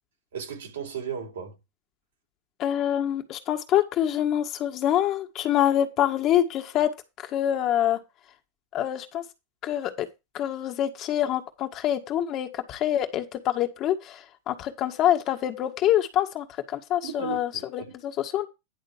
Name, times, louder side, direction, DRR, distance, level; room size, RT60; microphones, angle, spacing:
voice 1, 0.3-1.6 17.0-17.9, right 7 dB, 85° right, 3.8 m, -35 dB
voice 2, 2.6-6.9 7.2-8.0 8.7-9.2 9.6-10.1 10.3-18.5, left 11 dB, 40° left, 1.6 m, -26 dB
10.5 x 3.8 x 7.2 m
hypercardioid pair, 120°, 0 cm